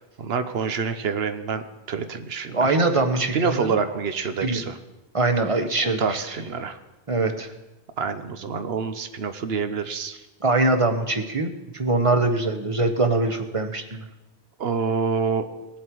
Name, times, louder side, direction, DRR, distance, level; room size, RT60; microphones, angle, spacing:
voice 1, 0.2-2.8 3.2-4.8 6.0-6.8 8.0-10.1 14.6-15.5, right 5 dB, 70° right, 10 dB, 1.0 m, -27 dB
voice 2, 2.5-4.0 4.4-4.6 5.1-6.2 7.1-7.5 10.4-14.1, right 2 dB, 35° right, 6 dB, 0.9 m, -23 dB
19.0 x 7.3 x 4.6 m, 1.0 s
omnidirectional pair, 1.1 m